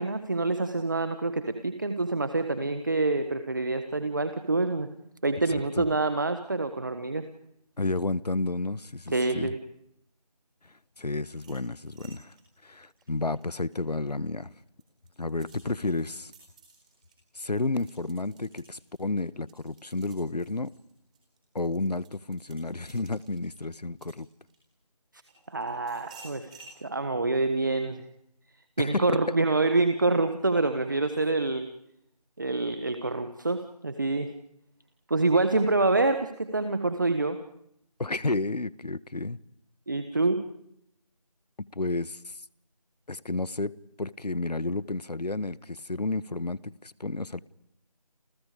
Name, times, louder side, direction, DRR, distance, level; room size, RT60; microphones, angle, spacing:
voice 1, 0.0-4.9 5.2-7.2 9.1-9.6 25.5-28.0 28.8-31.7 32.4-34.3 35.1-37.4 39.9-40.4, right 3 dB, 30° right, 1.4 m, -26 dB
voice 2, 5.5-5.9 7.8-9.5 10.6-12.3 12.6-14.5 15.2-16.3 17.3-20.7 21.5-24.3 28.8-29.3 38.0-39.4 41.6-42.3 43.1-47.4, left 2 dB, 80° left, 1.3 m, -31 dB
sound 1, 11.3-14.1 14.6-24.7 25.3-26.8, right 3 dB, 10° right, 4.2 m, -55 dB
29.5 x 29.0 x 5.1 m
figure-of-eight pair, 175°, 20 cm